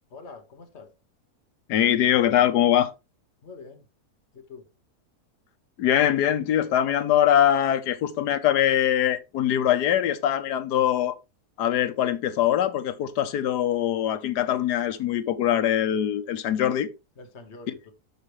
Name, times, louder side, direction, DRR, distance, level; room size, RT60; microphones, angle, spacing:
voice 1, 0.1-0.9 3.4-3.8 4.3-4.7 17.2-17.9, left 4 dB, 45° left, 1.7 m, -45 dB
voice 2, 1.7-2.9 5.8-11.1 11.6-16.9, left 11 dB, 85° left, 1.4 m, -22 dB
12.5 x 5.1 x 3.1 m
omnidirectional pair, 1.7 m